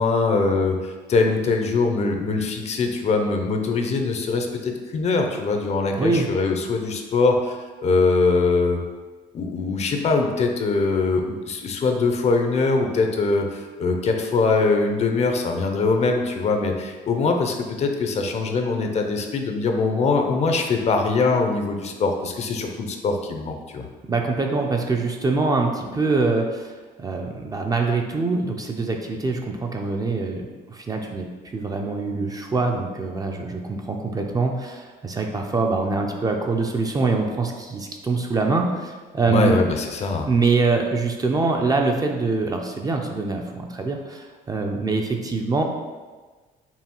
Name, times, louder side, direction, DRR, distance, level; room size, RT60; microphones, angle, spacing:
voice 1, 0.0-8.8 9.3-23.8 39.3-40.3, left 3 dB, 40° left, 4 dB, 0.5 m, -22 dB
voice 2, 24.1-26.7 27.0-39.6 40.2-45.6, right 3 dB, 20° right, 2 dB, 0.4 m, -24 dB
5.5 x 2.3 x 2.9 m, 1.3 s
cardioid pair, 110°, 17 cm